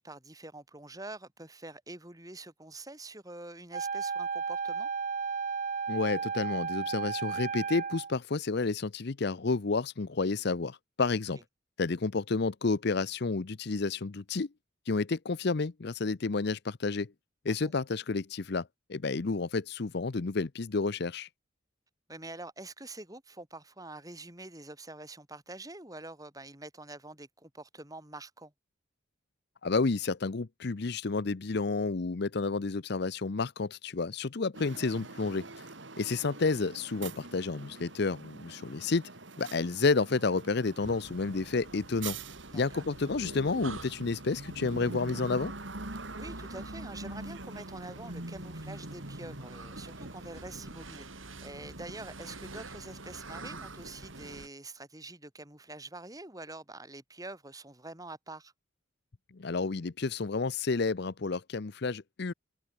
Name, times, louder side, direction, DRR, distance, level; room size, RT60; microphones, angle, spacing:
voice 1, 0.0-4.9 17.5-17.7 22.1-28.5 36.0-36.1 42.5-42.8 46.2-58.5, right 2 dB, 20° right, 3.8 m, -46 dB
Wind instrument woodwind instrument, 3.7-8.1, right 6 dB, 40° right, 0.5 m, -33 dB
voice 2, 5.9-11.4 11.8-14.5 14.9-17.1 17.4-21.3 29.6-35.7 36.0-39.0 39.4-42.2 42.5-45.5 59.3-62.3, left 3 dB, 55° left, 0.6 m, -30 dB
sound 1, 34.5-54.4, right 2 dB, 65° right, 2.9 m, -45 dB
sound 2, 40.8-54.5, right 2 dB, 85° right, 6.2 m, -48 dB
head